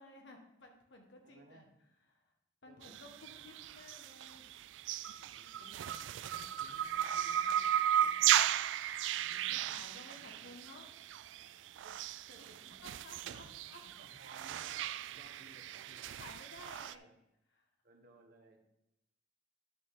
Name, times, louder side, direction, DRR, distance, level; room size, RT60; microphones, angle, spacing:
voice 1, 0.0-1.7 2.1-2.2 2.6-4.5 9.5-10.9 13.0-13.8 15.9-17.1 17.6-17.7, left 2 dB, 80° left, 2 dB, 1.7 m, -55 dB
voice 2, 1.2-1.7 2.6-2.9 3.4-3.5 5.1-8.5 9.1-10.6 11.8-12.0 12.3-16.2 16.6-17.1 17.8-18.6, right 1 dB, 55° right, 3 dB, 1.5 m, -61 dB
sound 1, 2.8-16.9, right 11 dB, 85° right, 0.3 m, -35 dB
10.5 x 6.4 x 3.8 m, 0.84 s
head